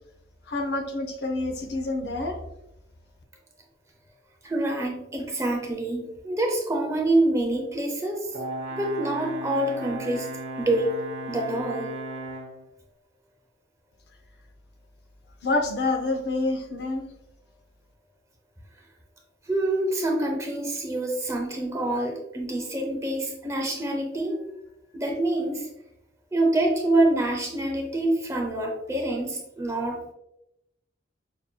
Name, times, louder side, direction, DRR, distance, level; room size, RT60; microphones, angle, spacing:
voice 1, 0.5-2.4 15.4-17.1, left 2 dB, 55° left, 3 dB, 0.6 m, -27 dB
voice 2, 4.4-8.3 8.7-10.9 11.3-11.9 19.5-24.4 24.9-25.7 26.3-30.0, right 1 dB, 15° right, 0 dB, 0.6 m, -26 dB
Brass instrument, 8.3-12.6, right 1 dB, 80° right, 0.8 m, -35 dB
5.9 x 2.7 x 2.2 m, 0.87 s
head